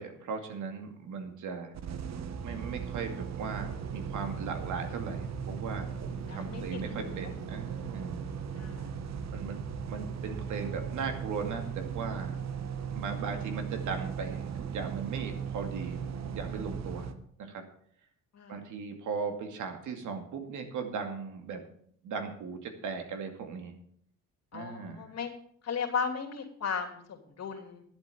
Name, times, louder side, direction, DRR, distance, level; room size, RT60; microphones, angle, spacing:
voice 1, 0.0-1.8 2.4-8.2 9.3-9.6 9.9-12.4 12.9-17.1 17.4-17.6 18.5-21.6 22.0-23.7 24.5-25.1, right 5 dB, 80° right, 5 dB, 2.4 m, -38 dB
sound 1, 1.7-17.1, right 7 dB, 60° right, 1.2 m, -37 dB
voice 2, 6.3-7.3 8.6-8.9 18.3-18.6 24.5-25.3 25.6-27.8, left 6 dB, 60° left, 3 dB, 3.0 m, -36 dB
11.5 x 8.2 x 7.1 m, 0.62 s
cardioid pair, 90°, 30 cm